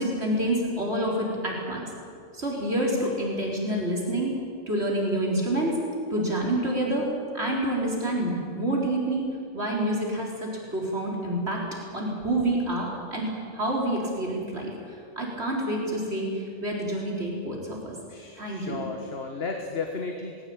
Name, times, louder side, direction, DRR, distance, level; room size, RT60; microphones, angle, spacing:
voice 1, 0.0-1.9 2.3-4.3 4.7-5.7 6.1-7.1 7.3-9.3 9.5-11.6 11.9-14.7 15.2-17.9 18.4-18.8, right 1 dB, 85° right, -2 dB, 4.6 m, -28 dB
voice 2, 18.1-20.4, left 4 dB, 70° left, 3 dB, 1.7 m, -34 dB
20.5 x 17.5 x 8.8 m, 2.4 s
omnidirectional pair, 1.1 m